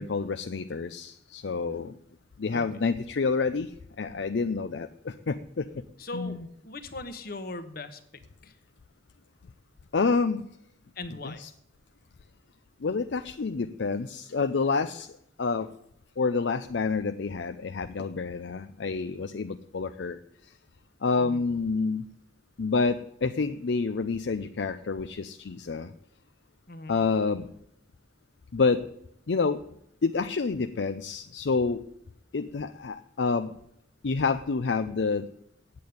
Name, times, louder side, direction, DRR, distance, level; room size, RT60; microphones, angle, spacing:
voice 1, 0.0-1.9 2.4-3.7 4.0-5.7 6.1-6.4 9.9-10.4 11.2-11.5 12.8-15.1 15.4-15.7 16.2-20.2 21.0-22.0 22.6-25.9 26.9-27.5 28.5-28.8 29.3-29.6 30.0-31.8 32.3-33.5 34.0-35.3, left 4 dB, 65° left, 10 dB, 0.5 m, -28 dB
voice 2, 6.0-8.0 8.4-8.6 10.9-11.4 21.2-21.4 26.7-27.0, left 2 dB, 50° left, 10 dB, 1.2 m, -39 dB
8.6 x 8.5 x 9.4 m, 0.75 s
head